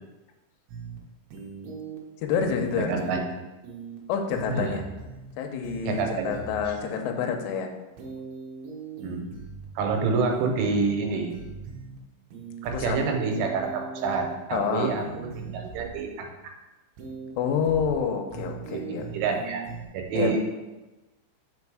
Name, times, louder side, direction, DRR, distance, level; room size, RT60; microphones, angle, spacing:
sound 1, 0.7-1.0 1.3-2.0 2.3-3.3 3.6-4.0 4.3-5.3 5.6-6.7 8.0-9.7 10.3-10.7 11.3-12.0 12.3-14.3 14.6-16.0 17.0-17.3 17.6-18.0 18.3-19.9, right 5 dB, 70° right, 2.5 m, -40 dB
voice 1, 2.2-3.1 4.1-4.8 5.4-7.7 12.7-13.0 14.5-15.0 17.4-19.0 20.1-20.3, left 7 dB, 80° left, 4 dB, 2.6 m, -28 dB
voice 2, 2.8-3.2 4.5-4.8 5.9-6.4 9.0-9.3 9.8-11.4 12.6-16.3 18.9-19.6 19.9-20.4, right 4 dB, 90° right, 3 dB, 3.4 m, -27 dB
5.3 x 5.3 x 4.7 m, 1.1 s
omnidirectional pair, 5.4 m